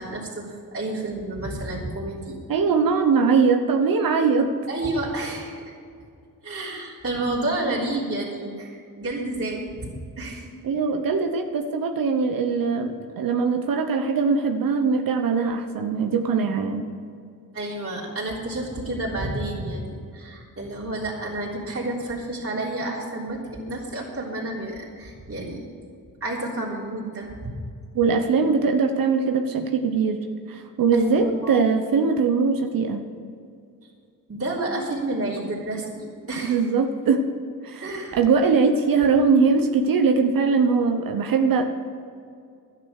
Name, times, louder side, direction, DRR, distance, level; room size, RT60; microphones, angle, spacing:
voice 1, 0.0-2.4 4.7-5.7 6.4-9.9 10.2-10.5 17.5-25.7 26.2-27.5 30.9-31.6 34.3-36.6 37.8-38.2, right 1 dB, 40° right, -6 dB, 3.6 m, -30 dB
voice 2, 2.5-4.5 10.6-16.9 27.9-33.0 36.4-37.2 37.6-37.9 38.1-41.6, right 5 dB, 70° right, 5 dB, 1.1 m, -21 dB
12.0 x 9.8 x 6.5 m, 2.3 s
cardioid pair, 85°, 35 cm